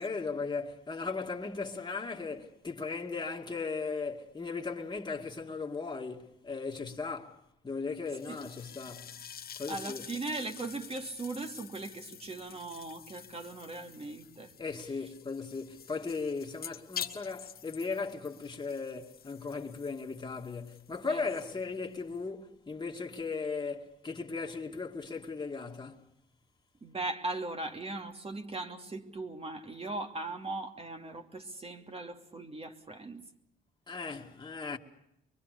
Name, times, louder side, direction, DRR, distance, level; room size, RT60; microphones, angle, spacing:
voice 1, 0.0-7.4 7.6-9.2 9.6-10.1 14.6-26.1 33.9-34.8, left 4 dB, 20° left, 2.4 m, -37 dB
sound 1, 8.1-22.3, left 8 dB, 50° left, 1.4 m, -48 dB
voice 2, 9.7-14.5 21.1-21.2 26.8-33.2, right 2 dB, 30° right, 2.7 m, -39 dB
24.0 x 23.5 x 6.7 m
cardioid pair, 90°, 20 cm